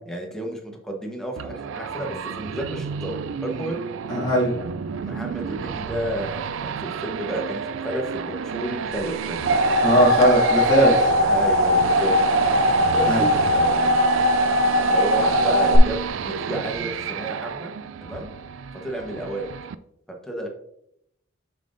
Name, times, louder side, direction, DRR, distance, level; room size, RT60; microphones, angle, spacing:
voice 1, 0.1-3.8 5.0-9.4 11.2-12.2 12.9-14.1 14.9-17.7 18.0-18.3 18.8-19.5 20.1-20.5, right 1 dB, 5° left, 0 dB, 1.0 m, -32 dB
sound 1, 1.4-19.7, right 6 dB, 65° right, 0.3 m, -31 dB
voice 2, 4.1-4.6 9.8-11.1 13.0-13.3, equal, 20° left, -7 dB, 2.1 m, -19 dB
sound 2, 9.1-15.8, equal, 80° right, 0.9 m, -20 dB
7.4 x 5.7 x 2.6 m, 0.74 s
head